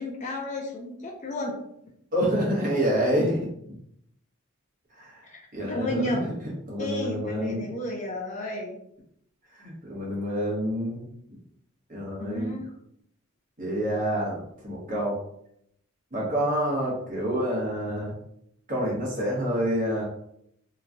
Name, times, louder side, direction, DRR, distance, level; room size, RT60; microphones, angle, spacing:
voice 1, 0.0-1.6 5.2-6.4 6.8-8.8 12.2-12.7, left 1 dB, 35° left, 0 dB, 0.4 m, -32 dB
voice 2, 2.1-3.5 5.0-5.2 5.5-6.2 6.7-7.6 9.5-11.4 11.9-12.6 13.6-15.2 16.1-18.1 18.7-20.0, equal, 40° right, -5 dB, 1.1 m, -27 dB
3.0 x 2.3 x 2.5 m, 0.72 s
head